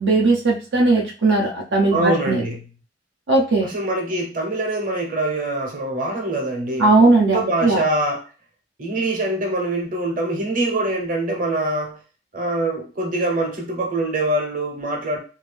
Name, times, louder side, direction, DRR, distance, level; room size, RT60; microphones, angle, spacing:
voice 1, 0.0-2.4 3.3-3.7 6.8-7.8, right 3 dB, 80° right, -2 dB, 0.7 m, -18 dB
voice 2, 1.9-2.6 3.6-6.9 7.3-8.2 8.8-12.0 12.3-15.2, right 2 dB, 50° right, 1 dB, 0.9 m, -24 dB
2.7 x 2.6 x 3.3 m, 0.36 s
head